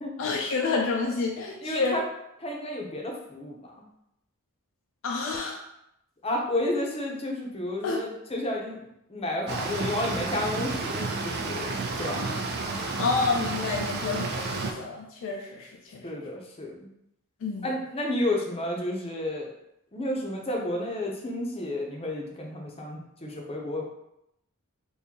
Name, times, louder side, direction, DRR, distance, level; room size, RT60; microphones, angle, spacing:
voice 1, 0.2-1.9 5.0-5.6 7.8-8.0 12.1-12.4 13.0-16.0 17.4-17.7, left 4 dB, 65° left, 1 dB, 0.4 m, -29 dB
voice 2, 1.6-2.0 2.4-3.9 6.2-11.7 12.0-12.4 16.0-16.9 17.6-19.5 19.9-23.8, left 1 dB, 25° left, -1 dB, 0.6 m, -31 dB
sound 1, 9.5-14.7, right 3 dB, 50° right, 0.4 m, -31 dB
3.7 x 2.7 x 2.8 m, 0.81 s
head